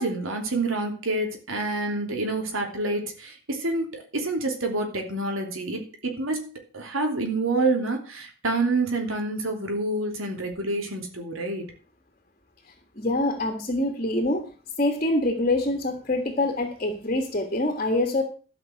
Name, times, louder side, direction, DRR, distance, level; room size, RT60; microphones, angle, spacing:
voice 1, 0.0-11.7, right 2 dB, 85° right, 3 dB, 3.1 m, -28 dB
voice 2, 13.0-14.5 14.8-18.2, left 2 dB, 35° left, 4 dB, 1.8 m, -25 dB
13.0 x 6.0 x 7.8 m, 0.40 s
head